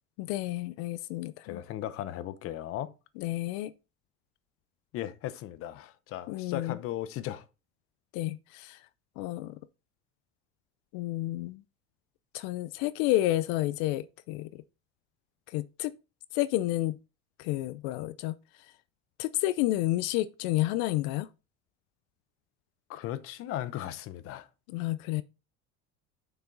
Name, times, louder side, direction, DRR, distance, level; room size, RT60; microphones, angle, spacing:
voice 1, 0.2-1.6 3.2-3.7 6.3-6.8 8.1-8.8 9.2-9.6 10.9-11.6 12.3-14.5 15.5-15.9 16.3-17.0 17.4-18.3 19.2-21.3 24.7-25.2, left 16 dB, 85° left, 0.6 m, -30 dB
voice 2, 1.4-2.9 4.9-7.4 22.9-24.5, left 12 dB, 45° left, 0.8 m, -37 dB
7.3 x 5.8 x 3.9 m
cardioid pair, 155°, 31 cm